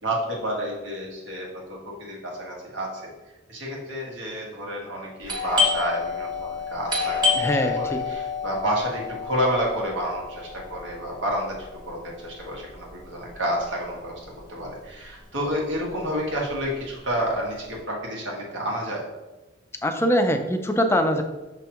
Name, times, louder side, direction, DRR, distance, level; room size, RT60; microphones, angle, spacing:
voice 1, 0.0-2.9 3.5-14.1 14.5-19.0, equal, 80° right, -3 dB, 1.9 m, -30 dB
Doorbell, 5.2-14.6 14.9-15.0 15.6-16.0 16.3-17.7, left 5 dB, 25° right, 1.2 m, -29 dB
voice 2, 7.4-8.0 19.8-21.2, equal, 15° left, 6 dB, 0.5 m, -22 dB
6.0 x 5.6 x 3.0 m, 1.1 s
head